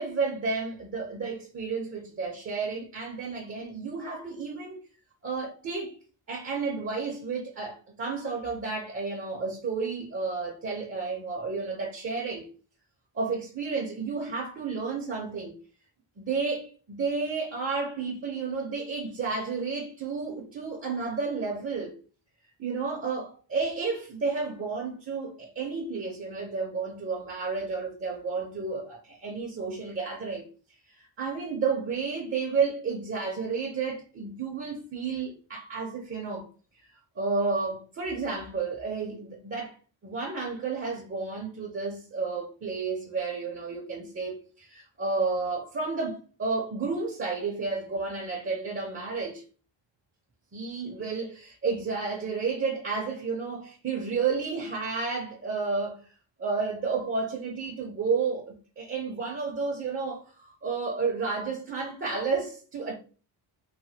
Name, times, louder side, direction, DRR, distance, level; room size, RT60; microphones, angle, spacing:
voice 1, 0.0-4.8 5.2-6.0 6.3-12.5 13.1-15.6 16.2-22.0 22.6-30.5 30.9-36.5 37.2-39.7 40.0-49.4 50.5-56.0 56.4-63.0, right 4 dB, 30° right, 0.7 m, -31 dB
3.2 x 2.2 x 2.7 m
cardioid pair, 140°, 46 cm